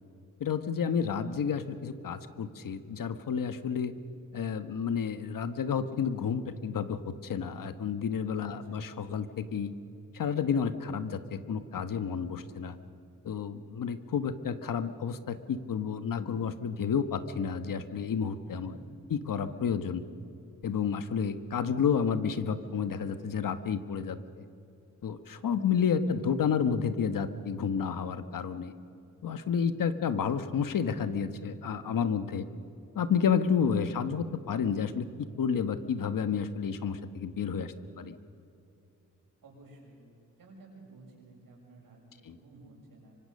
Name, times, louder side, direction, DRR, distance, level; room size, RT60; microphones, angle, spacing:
voice 1, 0.4-3.9 4.3-9.7 10.1-12.8 13.2-18.7 19.1-20.0 20.6-24.2 25.0-28.7 29.2-32.5 32.9-38.2 42.3-42.4, left 7 dB, 75° left, 11 dB, 1.3 m, -30 dB
voice 2, 8.4-8.9 18.4-18.9 39.4-40.0 40.4-43.1, right 2 dB, 90° right, -1 dB, 7.1 m, -53 dB
25.0 x 24.5 x 6.5 m, 2.8 s
wide cardioid pair, 165°, 33 cm